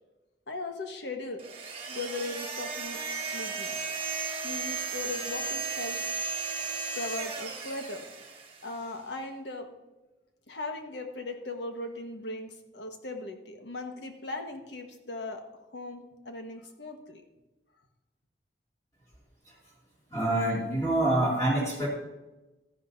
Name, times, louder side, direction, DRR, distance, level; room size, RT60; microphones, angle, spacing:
voice 1, 0.5-1.4 1.9-3.0 3.3-3.8 4.4-6.1 7.0-8.0 8.6-9.7 10.5-15.4 15.7-17.2, left 2 dB, 80° left, 4 dB, 1.4 m, -38 dB
sound 1, 1.4-8.8, right 4 dB, 30° right, 1.4 m, -35 dB
voice 2, 20.1-21.9, right 1 dB, 20° left, -6 dB, 2.5 m, -26 dB
13.5 x 11.0 x 2.7 m, 1.0 s
head